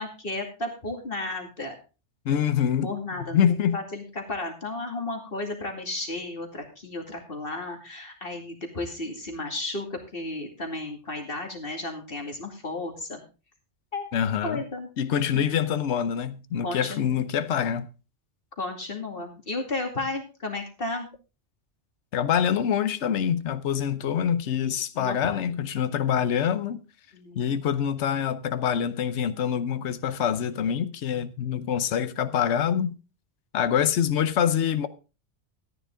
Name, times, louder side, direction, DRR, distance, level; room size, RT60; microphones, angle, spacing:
voice 1, 0.0-1.8 2.8-13.2 13.9-14.1 14.4-14.9 15.3-15.5 16.6-17.2 18.6-21.1 24.9-25.4 27.1-27.5, left 2 dB, 50° left, 2.7 m, -33 dB
voice 2, 2.2-2.9 3.3-3.8 14.1-14.6 15.0-17.9 22.1-26.8 27.3-33.0 33.5-34.9, left 8 dB, 75° left, 1.1 m, -25 dB
13.5 x 10.0 x 3.6 m
omnidirectional pair, 1.2 m